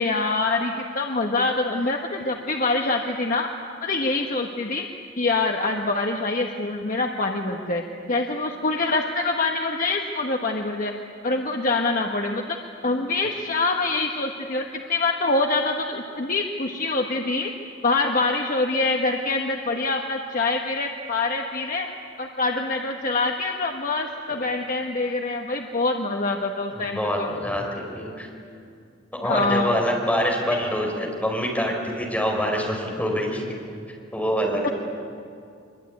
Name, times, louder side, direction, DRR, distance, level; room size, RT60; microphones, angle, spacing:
voice 1, 0.0-3.5 3.8-4.9 5.2-10.9 11.2-12.6 12.8-17.5 17.8-21.9 22.2-27.3 29.2-29.8 34.6-34.7, left 3 dB, 45° left, 2 dB, 1.4 m, -25 dB
voice 2, 26.7-28.3 29.1-33.4 34.1-34.7, equal, 10° left, 0 dB, 5.0 m, -25 dB
23.5 x 23.0 x 9.6 m, 2.4 s
head